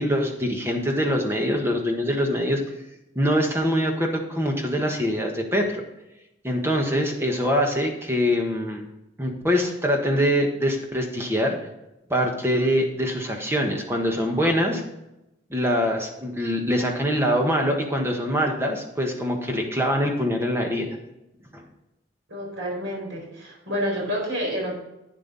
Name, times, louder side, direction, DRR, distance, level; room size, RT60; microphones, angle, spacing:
voice 1, 0.0-2.6 3.1-5.8 6.4-8.8 9.2-11.6 12.1-14.8 15.5-20.9 21.5-21.6, equal, 10° right, 2 dB, 1.4 m, -24 dB
voice 2, 22.3-24.7, equal, 75° right, -1 dB, 4.4 m, -29 dB
11.5 x 9.1 x 4.1 m, 0.90 s
head